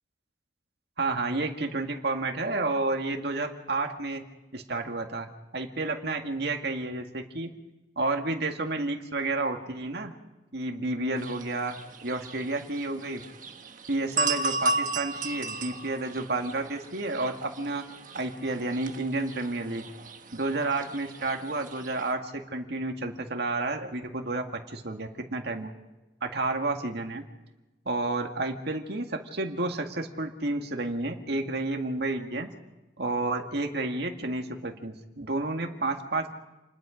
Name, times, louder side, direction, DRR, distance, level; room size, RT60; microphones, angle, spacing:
voice 1, 1.0-4.2 4.5-5.3 5.5-7.5 8.0-10.1 10.5-11.8 12.0-13.2 13.9-17.8 18.1-19.8 20.3-25.7 26.2-27.2 27.9-32.5 33.0-36.3, right 2 dB, 65° right, 4 dB, 2.1 m, -30 dB
sound 1, 11.2-22.1, right 2 dB, 50° right, 1.4 m, -35 dB
29.0 x 20.5 x 5.2 m, 1.1 s
head